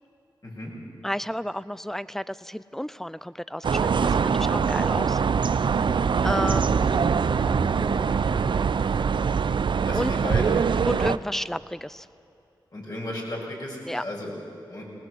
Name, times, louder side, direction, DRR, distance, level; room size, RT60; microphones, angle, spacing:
voice 1, 1.0-5.2 6.2-8.8 9.9-10.1 10.9-12.1 13.9-14.0, equal, 5° left, 17 dB, 0.6 m, -32 dB
sound 1, 3.6-11.2, right 6 dB, 70° right, 0.5 m, -23 dB
voice 2, 9.8-10.7 12.7-14.4 14.7-14.8, left 1 dB, 50° left, -2 dB, 6.5 m, -34 dB
19.5 x 19.0 x 8.0 m, 2.7 s
cardioid pair, 50°, 8 cm